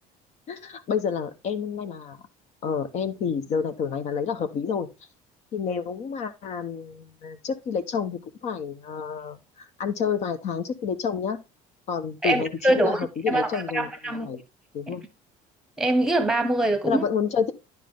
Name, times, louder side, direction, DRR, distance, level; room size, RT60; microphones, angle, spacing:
voice 1, 0.5-2.2 2.6-4.9 5.5-11.4 11.9-14.4 14.7-15.0 16.9-17.5, left 6 dB, 50° left, 1.2 m, -29 dB
voice 2, 12.2-14.3 15.8-17.0, right 1 dB, 5° right, 1.3 m, -24 dB
10.5 x 4.6 x 3.7 m
cardioid pair, 150°, 15 cm